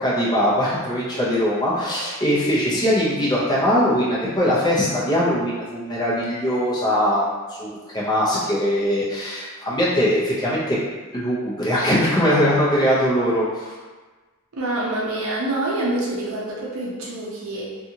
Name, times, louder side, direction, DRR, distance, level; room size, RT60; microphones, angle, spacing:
voice 1, 0.0-10.8 11.1-13.7, equal, 20° left, -7 dB, 0.6 m, -21 dB
voice 2, 14.5-17.8, right 1 dB, 70° right, -5 dB, 0.5 m, -26 dB
2.7 x 2.4 x 2.8 m, 1.3 s
head